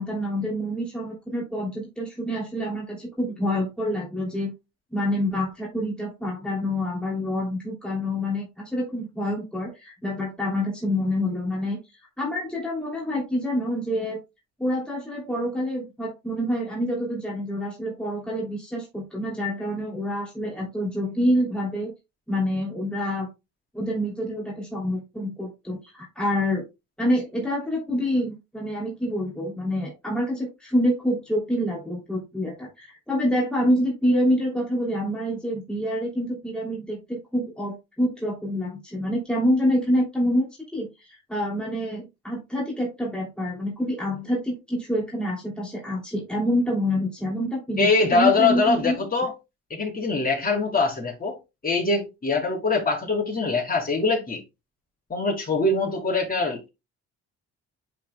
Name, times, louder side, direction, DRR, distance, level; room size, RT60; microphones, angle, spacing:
voice 1, 0.0-4.5 4.9-11.8 12.2-14.2 14.6-21.9 22.3-23.3 23.7-26.6 27.0-49.1, equal, 5° left, 3.0 m, -27 dB
voice 2, 47.8-49.3 49.7-51.4 51.6-54.4 55.1-56.7, left 3 dB, 30° left, 4.0 m, -23 dB
10.5 x 4.9 x 2.3 m
cardioid pair, 90°, 30 cm